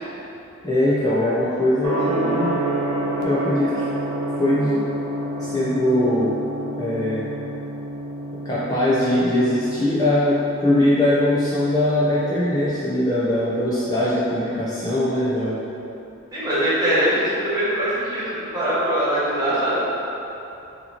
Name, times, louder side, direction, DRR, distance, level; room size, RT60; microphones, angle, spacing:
voice 1, 0.6-2.6 3.2-3.8 4.4-4.8 5.3-6.3 6.8-7.3 8.4-15.6, left 1 dB, 20° left, -10 dB, 0.5 m, -21 dB
Gong, 1.8-12.7, right 1 dB, 85° right, 0.7 m, -29 dB
voice 2, 16.3-19.8, right 1 dB, 20° right, -11 dB, 1.4 m, -22 dB
6.3 x 2.9 x 2.8 m, 3.0 s
head